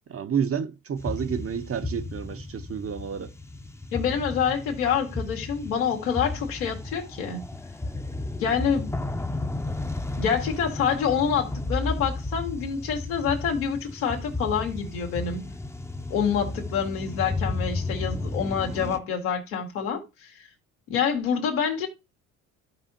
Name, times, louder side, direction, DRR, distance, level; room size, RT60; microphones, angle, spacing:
voice 1, 0.1-3.3, right 7 dB, 35° right, 0.8 m, -30 dB
sound 1, 1.0-19.0, left 2 dB, 5° left, 0.8 m, -33 dB
voice 2, 3.9-7.4 8.4-8.9 10.2-15.5 16.1-20.3 20.9-21.9, left 7 dB, 80° left, 2.1 m, -27 dB
14.5 x 4.9 x 2.8 m
hypercardioid pair, 55°, 41 cm